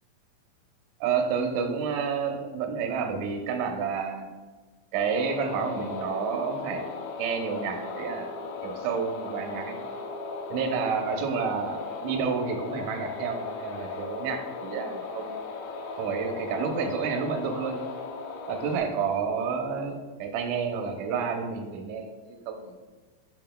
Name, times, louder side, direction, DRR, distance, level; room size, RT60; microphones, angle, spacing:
voice 1, 1.0-4.3 4.9-6.9 7.2-8.3 8.6-9.8 10.5-15.3 16.0-17.8 18.5-22.1 22.5-22.8, right 6 dB, 70° right, 3 dB, 1.9 m, -30 dB
sound 1, 5.0-18.8, left 4 dB, 80° left, 1.7 m, -37 dB
8.9 x 5.8 x 2.2 m, 1.3 s
omnidirectional pair, 3.9 m